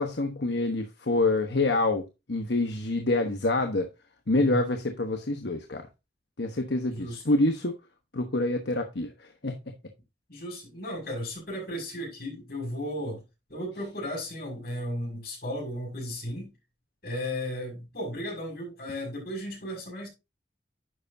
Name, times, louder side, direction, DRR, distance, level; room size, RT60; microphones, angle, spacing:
voice 1, 0.0-3.9 4.3-5.8 6.4-7.7 8.1-9.1 9.4-9.7, left 2 dB, 75° left, 1.1 m, -26 dB
voice 2, 6.9-7.2 10.3-13.2 13.5-16.5 17.0-20.1, equal, 55° left, 6.2 m, -35 dB
11.0 x 7.0 x 2.7 m
head